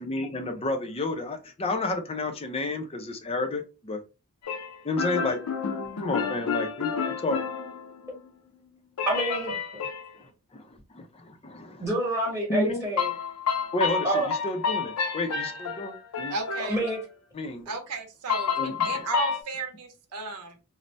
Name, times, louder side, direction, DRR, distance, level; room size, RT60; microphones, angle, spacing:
voice 1, 0.0-4.0 4.8-5.4 6.0-6.9 7.2-7.4 10.5-10.6 11.0-11.8 12.5-12.8 13.7-16.3 17.3-17.6 18.6-18.9, left 2 dB, 25° left, 5 dB, 0.5 m, -31 dB
sound 1, 4.4-8.3 9.0-10.1 13.0-17.0 18.3-19.4, left 6 dB, 75° left, 0.5 m, -30 dB
voice 2, 9.1-9.6 11.8-13.1 14.0-14.3 16.7-17.0, right 1 dB, 5° right, -5 dB, 1.1 m, -27 dB
voice 3, 16.3-16.8 17.7-20.6, right 3 dB, 85° right, 4 dB, 0.7 m, -34 dB
2.7 x 2.0 x 3.1 m, 0.31 s
head